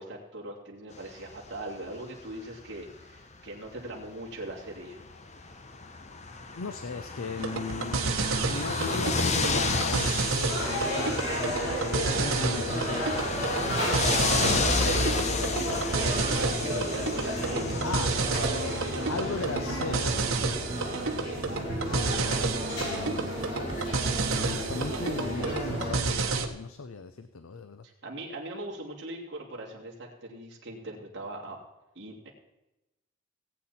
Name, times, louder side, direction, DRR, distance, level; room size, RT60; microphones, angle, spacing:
voice 1, 0.0-5.0 14.3-15.2 15.5-19.4 27.8-31.6 31.9-32.3, right 1 dB, 55° right, -2 dB, 2.7 m, -39 dB
sound 1, 1.3-1.6 2.7-2.8 3.0-3.1 3.5-3.6 3.8-4.0 4.6-20.5, left 3 dB, 35° left, 1.0 m, -32 dB
voice 2, 6.5-8.1 8.4-13.7 14.2-15.8 17.8-18.2 19.1-20.3 21.9-23.3 24.4-27.8, left 4 dB, 85° left, 10 dB, 0.6 m, -37 dB
sound 2, 7.4-26.5, right 3 dB, 90° right, 1.2 m, -31 dB
sound 3, 10.5-25.9, equal, 55° left, 5.2 m, -33 dB
18.0 x 8.5 x 4.3 m, 0.97 s
head